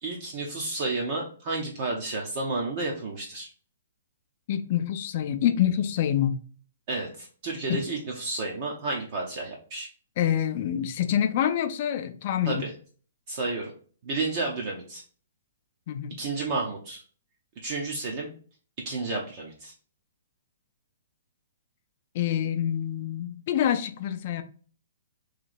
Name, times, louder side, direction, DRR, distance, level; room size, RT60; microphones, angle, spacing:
voice 1, 0.0-3.5 6.9-9.9 12.5-12.7 13.3-13.7 14.0-15.0 16.2-17.0 17.6-18.3 18.8-19.7, right 3 dB, 35° right, 0.7 m, -31 dB
voice 2, 4.5-6.4 7.7-7.8 10.2-12.6 15.9-16.2 22.1-24.4, left 10 dB, 35° left, 0.4 m, -26 dB
3.1 x 2.9 x 3.9 m
hypercardioid pair, 170°, 0 cm